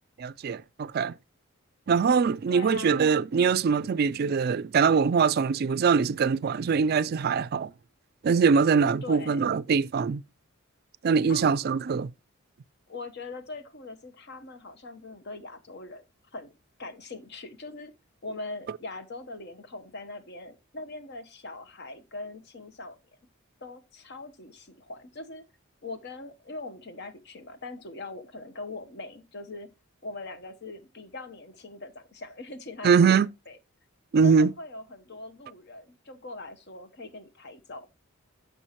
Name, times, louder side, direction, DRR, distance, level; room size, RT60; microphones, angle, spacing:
voice 1, 0.2-1.1 1.9-7.7 8.2-10.2 11.0-12.1 32.8-33.3 34.1-34.5, right 5 dB, 50° right, 0.3 m, -23 dB
voice 2, 2.5-3.0 9.0-9.5 11.3-11.5 12.9-16.0 16.3-17.9 18.2-23.0 23.6-25.4 25.8-29.7 30.0-33.1 33.5-33.6 34.2-37.9, left 2 dB, 55° left, 1.0 m, -41 dB
10.0 x 6.9 x 3.0 m
head